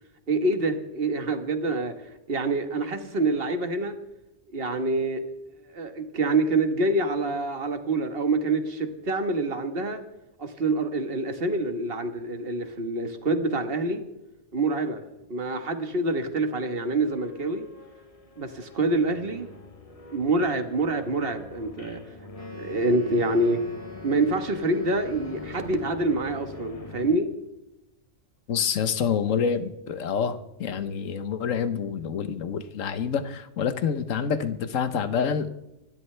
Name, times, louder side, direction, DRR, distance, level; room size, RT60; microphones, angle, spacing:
voice 1, 0.3-1.9 2.3-4.0 4.5-5.2 5.7-10.0 10.4-14.0 14.5-15.0 15.3-17.7 18.4-19.5 20.1-22.0 22.5-23.6 24.0-27.3, right 2 dB, 50° right, 7 dB, 1.6 m, -26 dB
sound 1, 17.0-27.2, left 2 dB, 30° left, 1.1 m, -44 dB
Wind instrument woodwind instrument, 22.3-26.4, left 4 dB, 10° left, 2.6 m, -45 dB
voice 2, 28.5-35.5, left 7 dB, 85° left, 11 dB, 1.3 m, -27 dB
25.5 x 12.5 x 3.3 m, 0.94 s
omnidirectional pair, 1.3 m